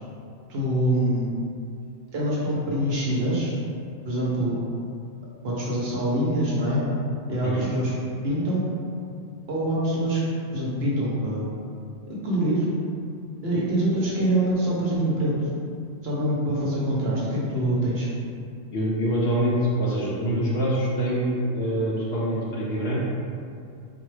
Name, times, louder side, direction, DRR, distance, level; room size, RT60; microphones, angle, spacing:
voice 1, 0.5-1.3 2.1-3.5 4.0-4.5 5.4-6.8 7.3-7.9 8.2-8.7 9.5-10.2 10.5-11.4 12.2-12.7 13.4-15.3 16.0-18.1, right 1 dB, 55° right, -6 dB, 0.8 m, -24 dB
voice 2, 18.7-23.0, right 1 dB, 65° left, -5 dB, 0.7 m, -25 dB
3.9 x 2.2 x 3.1 m, 2.4 s
omnidirectional pair, 1.3 m